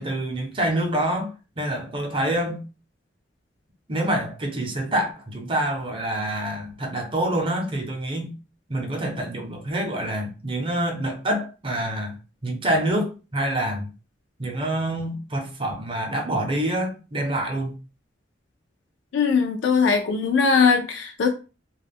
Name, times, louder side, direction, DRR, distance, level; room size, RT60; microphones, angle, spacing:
voice 1, 0.0-2.6 3.9-8.3 8.7-12.1 12.4-13.9 14.4-17.8, right 1 dB, 30° right, 0.6 m, -26 dB
voice 2, 19.1-21.3, left 5 dB, 85° left, 0.4 m, -20 dB
2.2 x 2.0 x 3.4 m
head